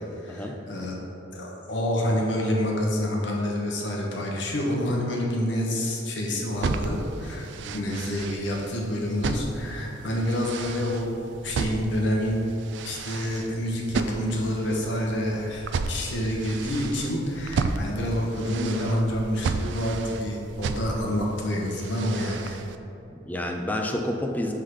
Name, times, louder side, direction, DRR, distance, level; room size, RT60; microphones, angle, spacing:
voice 1, 0.2-1.0 1.3-11.1 11.4-12.4 12.8-22.6, equal, 80° left, -1 dB, 1.1 m, -28 dB
sound 1, 6.5-22.8, right 4 dB, 80° right, 0.3 m, -33 dB
voice 2, 7.6-8.0 23.1-24.5, left 1 dB, 10° left, 2 dB, 0.4 m, -30 dB
6.0 x 3.7 x 4.9 m, 2.8 s
head